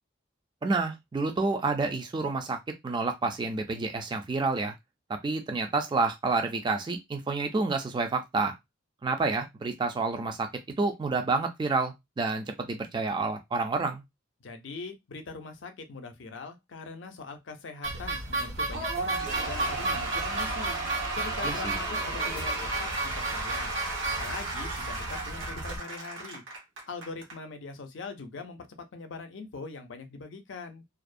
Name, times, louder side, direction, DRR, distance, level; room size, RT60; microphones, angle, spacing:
voice 1, 0.6-4.7 5.1-8.6 9.0-10.5 10.8-14.0 21.4-21.8, right 3 dB, 25° right, 0.3 m, -29 dB
voice 2, 14.4-20.8 21.1-23.7 24.0-26.4 26.9-30.8, left 4 dB, 70° left, 0.5 m, -42 dB
sound 1, 17.8-25.8, right 2 dB, 70° right, 1.3 m, -34 dB
Cheering / Applause / Crowd, 18.7-27.4, right 3 dB, 85° right, 0.9 m, -34 dB
2.4 x 2.0 x 2.5 m
head